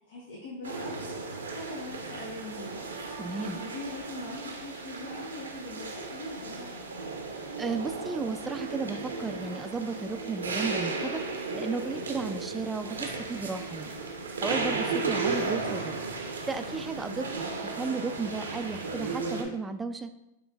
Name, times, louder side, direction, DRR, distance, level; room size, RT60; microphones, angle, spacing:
voice 1, 0.1-6.8, left 1 dB, 70° left, -3 dB, 0.9 m, -42 dB
sound 1, 0.6-19.4, right 3 dB, 90° right, 0.7 m, -35 dB
voice 2, 3.2-3.6 7.6-11.2 11.5-13.9 14.4-16.0 16.5-20.1, right 4 dB, 15° right, 9 dB, 0.3 m, -34 dB
6.1 x 3.0 x 2.3 m, 0.96 s
hypercardioid pair, 100°, 0 cm